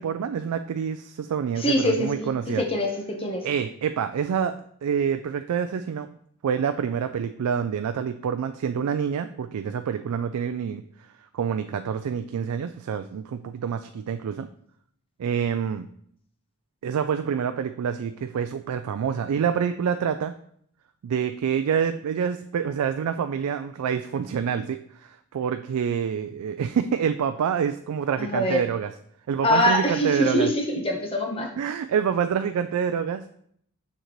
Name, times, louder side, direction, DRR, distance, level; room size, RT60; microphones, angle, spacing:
voice 1, 0.0-2.6 3.4-4.5 4.8-6.1 6.4-10.8 11.3-14.5 15.2-15.9 16.8-20.3 21.0-28.9 29.3-30.5 31.6-33.4, right 7 dB, 90° right, 9 dB, 0.3 m, -27 dB
voice 2, 1.6-3.4 28.2-28.6 29.4-31.5, left 1 dB, 25° left, 2 dB, 1.0 m, -24 dB
6.4 x 6.4 x 3.1 m, 0.66 s
head